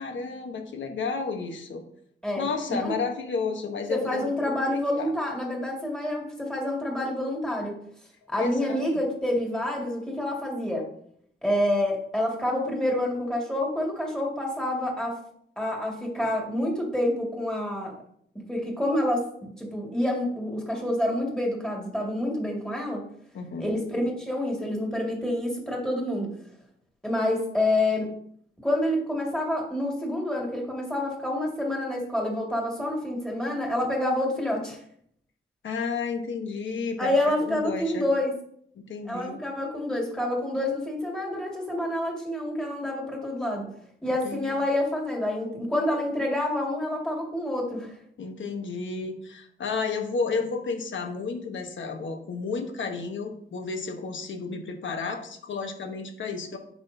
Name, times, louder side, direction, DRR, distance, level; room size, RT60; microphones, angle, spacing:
voice 1, 0.0-1.8 2.4-4.5 5.0-5.1 8.4-9.0 23.3-23.7 35.6-38.1 38.7-39.4 44.2-44.5 48.2-56.6, left 4 dB, 75° left, 5 dB, 1.2 m, -32 dB
voice 2, 3.9-7.7 8.3-10.9 11.4-15.2 15.6-17.9 18.5-23.0 23.6-26.3 27.0-28.1 28.6-34.8 37.0-38.3 39.1-43.7 44.0-47.9, left 1 dB, 5° left, -1 dB, 2.1 m, -28 dB
9.5 x 6.0 x 2.7 m, 0.67 s
wide cardioid pair, 110°, 20 cm